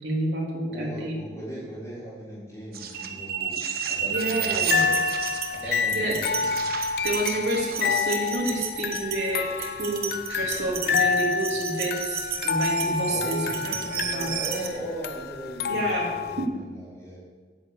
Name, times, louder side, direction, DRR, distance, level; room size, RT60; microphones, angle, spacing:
voice 1, 0.0-1.2 4.0-4.9 5.6-6.5 6.8-14.3 15.7-16.5, right 2 dB, 75° right, -3 dB, 2.9 m, -29 dB
voice 2, 0.7-3.6 3.9-5.0 5.5-6.5 13.1-17.2, right 1 dB, 15° left, -12 dB, 3.7 m, -38 dB
sound 1, 2.7-14.7, right 7 dB, 55° right, 1.1 m, -32 dB
sound 2, 4.1-16.5, left 6 dB, 60° left, 0.5 m, -28 dB
8.8 x 6.9 x 8.4 m, 1.5 s
head